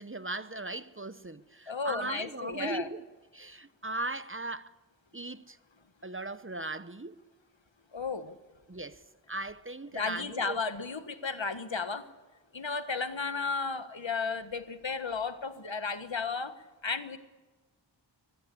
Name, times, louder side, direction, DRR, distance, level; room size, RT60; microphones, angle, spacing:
voice 1, 0.0-3.0 3.3-4.7 5.1-5.6 6.0-7.2 8.7-10.6, right 2 dB, 30° right, 0.9 m, -38 dB
voice 2, 1.7-2.9 7.9-8.3 9.9-12.0 12.5-16.5 16.8-17.2, left 4 dB, 75° left, 1.5 m, -34 dB
24.0 x 20.5 x 8.5 m
wide cardioid pair, 45°, 45 cm